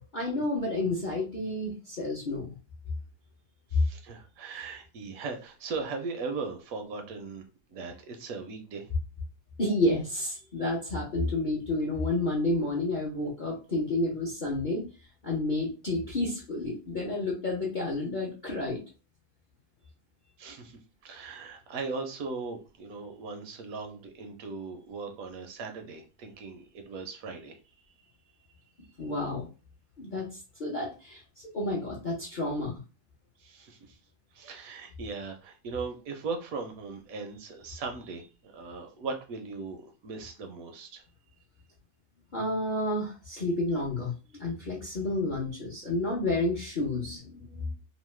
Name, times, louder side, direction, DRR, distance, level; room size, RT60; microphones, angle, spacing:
voice 1, 0.1-2.5 9.6-14.9 15.2-18.8 29.0-29.5 30.0-32.8 42.3-44.1 44.4-47.7, left 2 dB, 50° left, -3 dB, 0.6 m, -30 dB
voice 2, 3.7-7.4 7.7-8.9 20.4-27.6 28.0-28.1 29.0-29.1 33.4-34.0 34.3-41.1, right 4 dB, 70° right, 5 dB, 0.9 m, -38 dB
3.0 x 2.0 x 3.1 m, 0.33 s
omnidirectional pair, 1.6 m